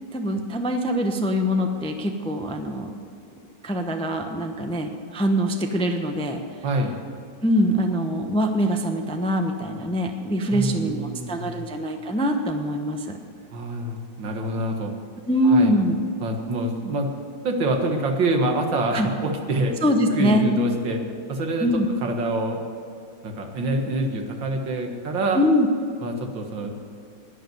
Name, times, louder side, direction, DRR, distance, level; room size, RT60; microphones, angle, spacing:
voice 1, 0.1-2.9 3.6-6.4 7.4-13.2 15.3-15.9 18.9-19.1 19.8-20.5 21.6-21.9 25.3-25.7, equal, 5° left, 4 dB, 0.5 m, -23 dB
voice 2, 6.6-7.0 10.5-11.7 13.5-14.9 15.4-15.7 16.2-17.1 17.4-19.8 20.1-21.0 21.3-21.7 22.0-22.6 23.2-25.4 26.0-26.7, right 1 dB, 75° right, 3 dB, 2.3 m, -26 dB
11.5 x 10.0 x 9.4 m, 2.4 s
omnidirectional pair, 2.1 m